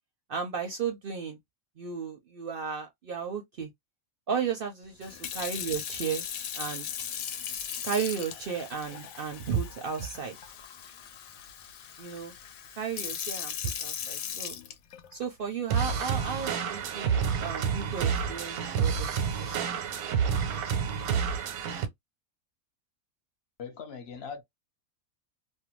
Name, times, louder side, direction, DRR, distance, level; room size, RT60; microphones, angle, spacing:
voice 1, 0.3-1.4 1.8-3.7 4.3-6.2 6.5-6.9 7.8-10.4 12.0-12.3 12.8-13.5 13.8-14.6 15.1-19.8, right 6 dB, 60° right, 0.6 m, -34 dB
Sink (filling or washing) / Fill (with liquid), 5.0-15.2 15.9-16.2, left 8 dB, 80° left, 1.0 m, -38 dB
sound 1, 15.7-21.9, right 7 dB, 90° right, 1.1 m, -29 dB
voice 2, 23.6-24.4, left 6 dB, 55° left, 0.9 m, -40 dB
2.6 x 2.2 x 2.9 m
omnidirectional pair, 1.4 m